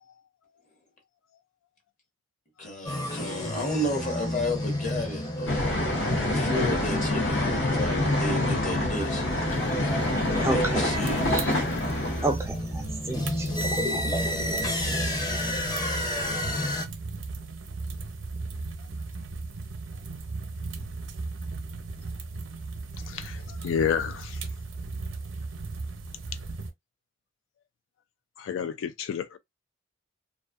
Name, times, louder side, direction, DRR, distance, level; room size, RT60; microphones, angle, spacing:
voice 1, 2.6-9.3 10.3-11.2, left 1 dB, 40° left, 1.0 m, -33 dB
sound 1, 2.8-16.8, left 1 dB, 20° left, 0.6 m, -31 dB
sound 2, 5.5-12.3, left 1 dB, 65° left, 0.8 m, -27 dB
voice 2, 10.4-11.7 12.2-13.6 13.9-14.6, right 2 dB, 15° right, 0.3 m, -32 dB
sound 3, 10.9-26.7, right 3 dB, 85° right, 0.6 m, -36 dB
voice 3, 23.1-24.4 28.4-29.4, left 7 dB, 80° left, 0.3 m, -30 dB
2.5 x 2.3 x 2.3 m
head